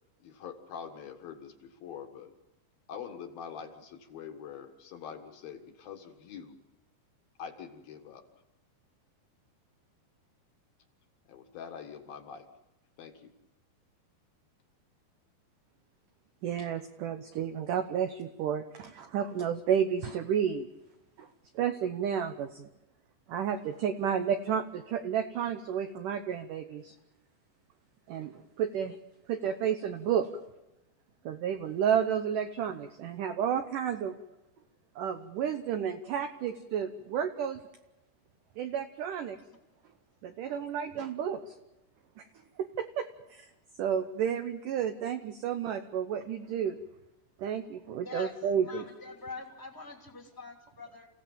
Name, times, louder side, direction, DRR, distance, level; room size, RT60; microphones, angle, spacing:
voice 1, 0.2-2.3 2.9-6.6 7.4-8.2 11.3-12.5 13.0-13.3, left 7 dB, 65° left, 5 dB, 3.1 m, -44 dB
voice 2, 16.4-20.7 21.2-21.3 21.5-22.7 23.3-26.9 28.1-29.0 29.3-30.3 31.3-34.1 35.0-37.6 38.6-39.4 40.2-41.6 42.2-42.3 42.6-43.5 43.8-46.8 47.4-48.9, right 8 dB, 85° right, 8 dB, 1.8 m, -31 dB
voice 3, 48.6-51.1, left 4 dB, 5° left, 2 dB, 1.8 m, -44 dB
29.5 x 16.0 x 7.3 m, 0.96 s
omnidirectional pair, 5.1 m